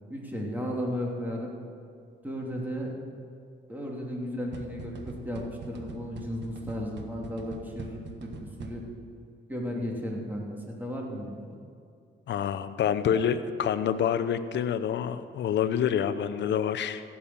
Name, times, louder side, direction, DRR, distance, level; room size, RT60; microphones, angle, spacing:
voice 1, 0.1-1.5 2.2-2.9 3.7-8.8 9.5-11.4, equal, 10° right, -2 dB, 3.0 m, -34 dB
sound 1, 4.5-9.1, right 5 dB, 65° right, 1.4 m, -44 dB
voice 2, 12.3-17.0, left 8 dB, 65° left, 12 dB, 0.8 m, -27 dB
16.0 x 7.1 x 7.4 m, 2.5 s
cardioid pair, 90°, 20 cm